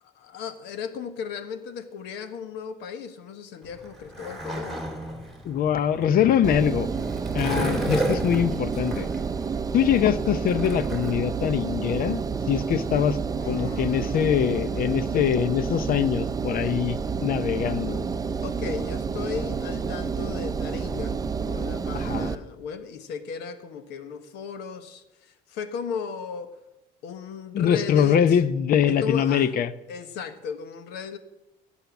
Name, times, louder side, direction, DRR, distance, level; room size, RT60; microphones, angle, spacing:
voice 1, 0.0-4.9 13.4-14.3 18.4-21.2 21.4-26.5 27.0-28.4 28.8-29.5 29.9-31.2, left 6 dB, 90° left, 10 dB, 1.2 m, -36 dB
Skateboard, 3.6-11.1, right 1 dB, ahead, 3.1 m, -33 dB
voice 2, 5.4-6.9 7.3-9.1 9.7-13.2 13.5-18.0 21.9-22.3 27.5-29.7, left 9 dB, 60° left, 15 dB, 0.7 m, -23 dB
Engine, 6.4-22.3, right 5 dB, 20° right, 0.6 m, -29 dB
16.5 x 5.7 x 7.1 m, 0.98 s
cardioid pair, 110°, 17 cm